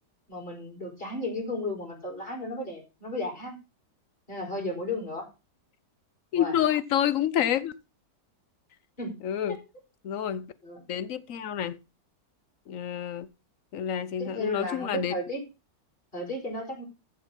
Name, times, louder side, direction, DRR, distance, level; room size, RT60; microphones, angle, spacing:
voice 1, 0.3-3.5 4.3-5.3 6.3-6.6 9.0-9.2 9.5-9.6 10.6-10.8 14.2-15.4 16.1-16.8, left 1 dB, 30° left, 4.3 m, -34 dB
voice 2, 6.3-7.7 9.2-9.6 10.0-10.5 10.9-11.8 12.7-13.3 13.7-15.2, left 10 dB, 60° left, 1.0 m, -28 dB
14.5 x 5.0 x 5.3 m
omnidirectional pair, 1.8 m